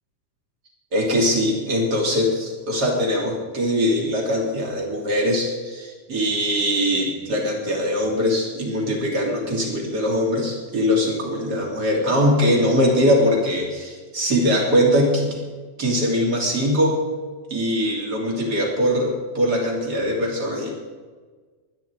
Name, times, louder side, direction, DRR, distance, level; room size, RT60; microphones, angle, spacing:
voice 1, 0.9-15.4 15.8-17.0 17.5-20.7, equal, 30° right, -1 dB, 3.5 m, -21 dB
24.0 x 10.0 x 4.7 m, 1.5 s
omnidirectional pair, 3.6 m